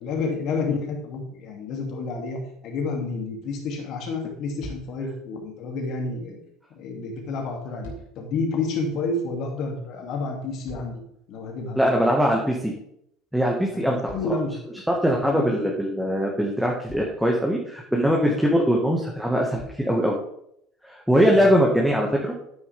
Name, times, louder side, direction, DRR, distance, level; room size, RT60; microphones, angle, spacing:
voice 1, 0.0-6.4 6.7-11.0 11.3-11.8 13.7-14.5 15.2-15.6 21.3-21.5, left 3 dB, 50° left, 1 dB, 2.9 m, -30 dB
sound 1, 4.6-5.1 7.5-8.3 10.2-11.3 14.0-15.0 16.2-16.3 16.8-17.3 18.7-18.8 19.5-20.0 20.8-20.9, left 1 dB, 70° left, 3.0 m, -44 dB
voice 2, 11.8-12.7 13.3-14.1 14.9-20.2 20.8-22.3, equal, ahead, -1 dB, 1.9 m, -21 dB
11.0 x 9.8 x 3.7 m, 0.74 s
figure-of-eight pair, 65°, 0 cm